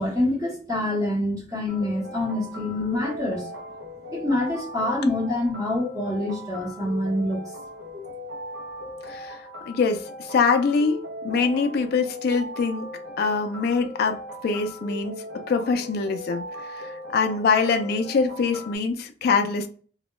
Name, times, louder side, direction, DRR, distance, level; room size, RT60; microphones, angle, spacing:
voice 1, 0.0-3.5 4.1-7.4 7.9-8.1, left 1 dB, 20° right, 0.8 m, -26 dB
sound 1, 1.7-18.7, left 1 dB, 80° right, 0.7 m, -39 dB
voice 2, 9.0-9.4 9.7-12.9 13.2-19.7, left 5 dB, 60° left, 0.3 m, -24 dB
2.2 x 2.1 x 2.8 m
head